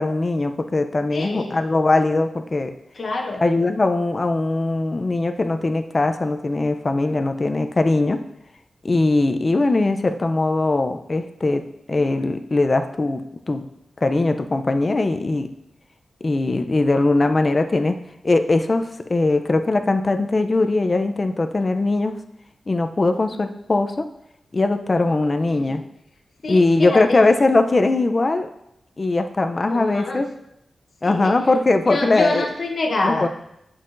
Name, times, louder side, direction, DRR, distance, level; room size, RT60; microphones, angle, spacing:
voice 1, 0.0-2.7 3.4-8.2 8.8-13.6 14.0-15.5 16.2-18.0 18.2-22.2 22.7-24.1 24.5-25.8 26.5-28.5 29.0-30.3 31.0-32.5 33.0-33.3, left 2 dB, 30° left, 7 dB, 0.4 m, -20 dB
voice 2, 1.1-1.6 2.9-3.4 25.1-25.8 26.4-27.2 29.7-30.3 31.0-31.4 31.9-33.3, left 2 dB, 50° left, 2 dB, 0.8 m, -26 dB
8.9 x 5.5 x 2.5 m, 0.81 s
wide cardioid pair, 155°, 0 cm